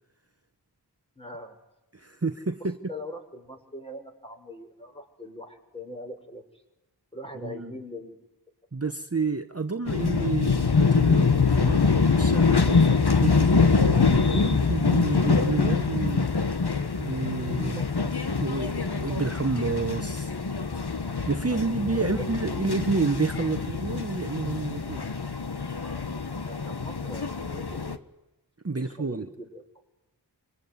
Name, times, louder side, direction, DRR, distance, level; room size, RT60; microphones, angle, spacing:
voice 1, 1.2-1.6 2.6-6.6 7.1-8.3 17.8-17.9 21.5-22.3 25.8-26.2 26.5-28.0 28.8-29.6, left 1 dB, 15° left, 3 dB, 6.0 m, -42 dB
voice 2, 1.9-2.8 7.4-7.7 8.7-16.3 17.0-17.8 18.4-20.3 21.3-25.1 28.6-29.3, right 4 dB, 35° right, 8 dB, 1.2 m, -30 dB
sound 1, 9.9-28.0, left 4 dB, 65° left, 1.5 m, -24 dB
26.0 x 23.5 x 9.7 m, 0.95 s
wide cardioid pair, 50°, 43 cm